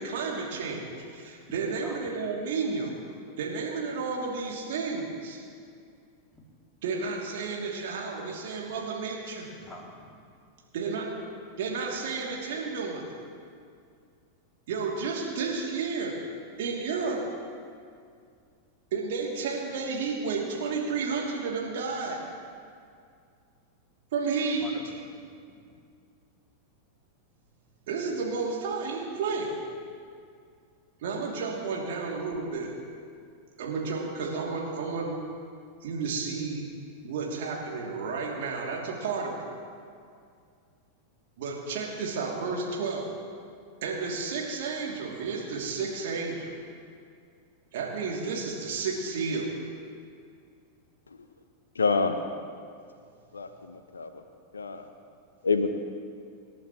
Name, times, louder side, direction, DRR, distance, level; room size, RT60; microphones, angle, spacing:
voice 1, 0.0-3.0 3.4-5.4 6.8-9.5 10.7-11.1 11.6-13.1 14.7-16.2 16.6-17.2 18.9-22.2 24.1-24.6 27.9-29.6 31.0-32.7 33.6-35.1 35.8-36.6 37.0-39.4 41.4-43.1 43.8-46.5 47.7-49.5, right 4 dB, 55° right, -2 dB, 3.0 m, -32 dB
voice 2, 9.6-10.2 24.6-25.8, equal, 5° left, -2 dB, 2.8 m, -47 dB
voice 3, 51.8-52.2 53.3-54.2 54.5-54.8 55.4-55.7, left 4 dB, 75° left, 8 dB, 0.8 m, -27 dB
26.0 x 11.0 x 3.2 m, 2.3 s
figure-of-eight pair, 90°, 0 cm